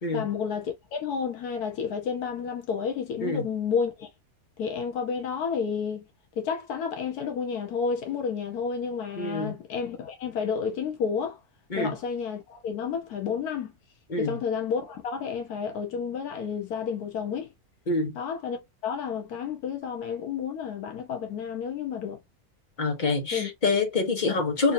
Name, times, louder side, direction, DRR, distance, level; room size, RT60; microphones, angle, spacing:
voice 1, 0.1-4.1 4.6-6.0 6.4-11.4 11.7-13.7 14.2-17.5 18.1-22.2 23.3-23.5 24.3-24.4 24.6-24.7, left 6 dB, 90° left, 1.3 m, -31 dB
voice 2, 9.2-9.5 11.7-11.9 14.1-14.4 17.9-18.2 22.8-24.7, left 3 dB, 35° left, 1.0 m, -26 dB
3.9 x 2.6 x 2.6 m
omnidirectional pair, 1.6 m